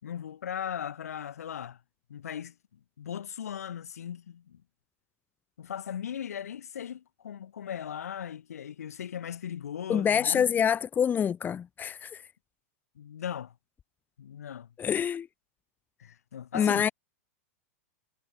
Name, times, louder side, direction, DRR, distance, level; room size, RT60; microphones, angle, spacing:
voice 1, 0.0-1.8 2.1-4.6 5.6-10.5 13.0-13.5 14.2-14.7 16.0-16.9, left 9 dB, 80° left, 6.8 m, -38 dB
voice 2, 9.9-12.2 14.8-15.3 16.5-16.9, left 8 dB, 20° left, 3.1 m, -26 dB
hypercardioid pair, 115°, 8 cm